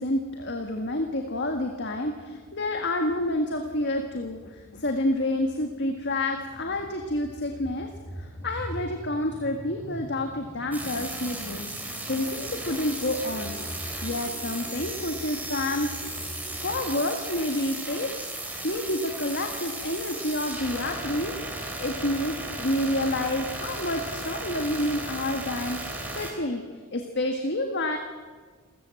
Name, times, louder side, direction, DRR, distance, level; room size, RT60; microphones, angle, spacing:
voice 1, 0.0-13.6 14.0-15.9 16.6-18.1 18.6-26.6 26.9-28.0, left 1 dB, 50° left, 4 dB, 1.8 m, -29 dB
sound 1, 5.6-16.9, equal, 10° left, 4.6 m, -42 dB
sound 2, 10.7-26.3, right 2 dB, 5° right, 3.8 m, -35 dB
28.0 x 15.0 x 7.8 m, 1.4 s
head